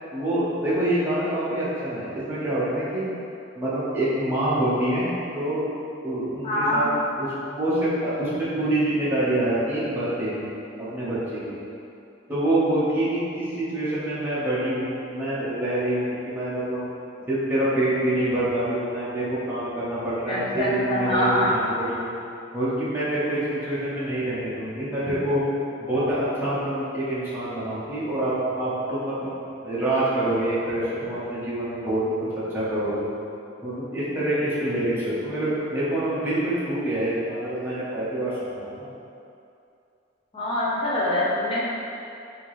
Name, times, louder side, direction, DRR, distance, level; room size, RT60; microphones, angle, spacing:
voice 1, 0.1-3.1 3.6-5.1 5.3-5.6 6.0-6.9 7.2-10.5 10.8-11.6 12.3-16.9 17.3-22.2 22.5-25.4 25.9-32.0 32.3-33.1 33.6-38.9, right 1 dB, 10° right, -11 dB, 0.8 m, -26 dB
voice 2, 6.4-6.8 20.3-21.6 40.3-41.6, left 1 dB, 30° left, -8 dB, 0.7 m, -24 dB
4.4 x 2.8 x 3.1 m, 2.6 s
head